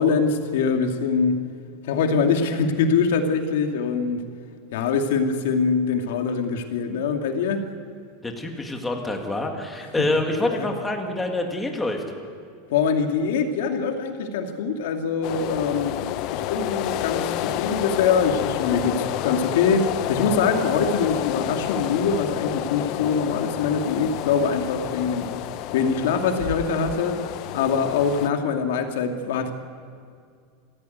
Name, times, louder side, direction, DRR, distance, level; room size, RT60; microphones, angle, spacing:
voice 1, 0.0-1.4 1.8-4.2 4.7-7.6 10.0-10.1 10.4-10.7 12.7-25.3 25.7-27.2 27.5-29.5, left 5 dB, 70° left, 4 dB, 2.5 m, -23 dB
voice 2, 8.2-12.0, left 2 dB, 5° left, 2 dB, 2.0 m, -26 dB
sound 1, 15.2-28.3, left 14 dB, 40° left, 0.6 m, -29 dB
25.5 x 16.5 x 9.5 m, 2.2 s
supercardioid pair, 180°, 0 cm